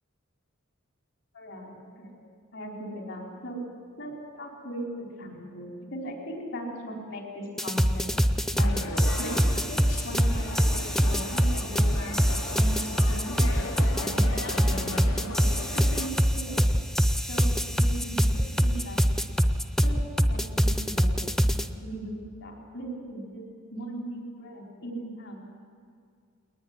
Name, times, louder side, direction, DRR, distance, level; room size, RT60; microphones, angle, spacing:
voice 1, 1.3-2.2 2.5-3.6 4.0-8.0 8.6-9.3 10.0-15.5 15.7-16.7 17.3-19.0 19.8-21.3 21.8-23.4 23.7-25.4, right 1 dB, 65° left, 0 dB, 4.9 m, -38 dB
sound 1, 7.6-21.7, equal, ahead, 0.6 m, -24 dB
sound 2, 8.6-16.1, left 2 dB, 85° left, 3.4 m, -37 dB
20.5 x 20.0 x 9.9 m, 2.2 s
head